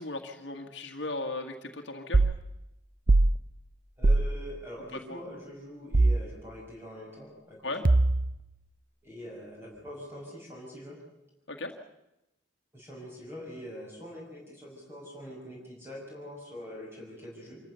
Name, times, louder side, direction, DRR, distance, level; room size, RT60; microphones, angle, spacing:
voice 1, 0.0-2.2 5.1-5.2 7.6-7.8 11.5-11.7, left 2 dB, 70° left, 3 dB, 1.8 m, -36 dB
sound 1, 2.1-2.4 3.1-3.3 4.0-4.3 5.9-6.2 7.8-8.4, right 2 dB, 45° right, 0.7 m, -21 dB
voice 2, 4.0-7.6 9.0-11.0 12.7-17.6, equal, 15° right, -4 dB, 6.1 m, -44 dB
26.5 x 14.5 x 8.2 m, 0.89 s
head